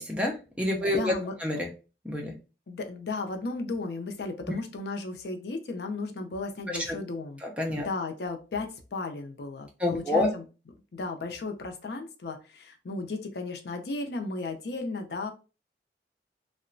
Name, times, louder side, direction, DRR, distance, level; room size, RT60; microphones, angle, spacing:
voice 1, 0.0-1.1 1.4-1.7 2.0-2.3 6.7-7.0 7.4-7.9 9.8-10.3, left 1 dB, 5° right, 0 dB, 0.4 m, -28 dB
voice 2, 1.0-1.3 2.7-7.4 7.8-10.4 10.9-15.3, left 3 dB, 70° left, 5 dB, 0.5 m, -35 dB
2.9 x 2.1 x 2.5 m, 0.32 s
head